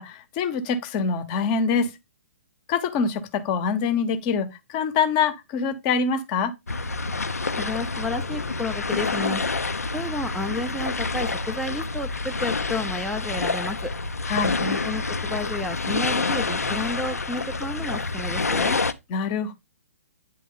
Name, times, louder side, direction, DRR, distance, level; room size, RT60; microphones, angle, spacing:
voice 1, 0.0-1.9 2.7-6.5 14.3-14.6 19.1-19.5, left 5 dB, 30° left, 0.8 m, -25 dB
sound 1, 6.7-18.9, left 3 dB, 85° left, 0.5 m, -27 dB
voice 2, 7.6-9.4 9.9-13.9 14.6-18.8, left 2 dB, ahead, 0.4 m, -31 dB
9.1 x 3.0 x 3.7 m
figure-of-eight pair, 125°, 8 cm